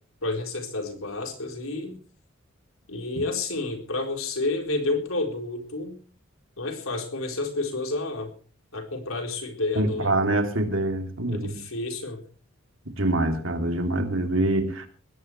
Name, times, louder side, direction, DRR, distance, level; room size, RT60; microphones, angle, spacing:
voice 1, 0.2-2.0 2.9-6.0 6.6-8.3 8.7-10.1 11.3-12.2, left 2 dB, 90° left, 4.2 m, -30 dB
voice 2, 9.7-11.6 12.9-14.9, right 1 dB, 70° right, 3.1 m, -25 dB
20.5 x 17.0 x 3.3 m
head